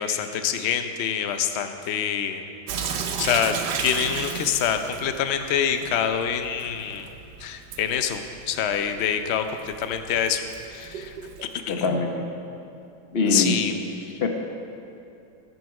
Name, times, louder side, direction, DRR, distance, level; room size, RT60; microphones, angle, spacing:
voice 1, 0.0-2.4 2.8-3.5 3.8-7.1 7.4-10.4 10.7-11.2 11.7-12.0 13.3-13.8 14.0-14.2, left 8 dB, 60° left, 7 dB, 0.7 m, -26 dB
Sink (filling or washing) / Drip, 2.7-11.6, right 6 dB, 70° right, 1.3 m, -35 dB
voice 2, 11.7-12.3 13.1-13.6 14.2-14.3, left 3 dB, 40° left, 3 dB, 1.0 m, -23 dB
13.0 x 9.6 x 4.8 m, 2.6 s
omnidirectional pair, 1.9 m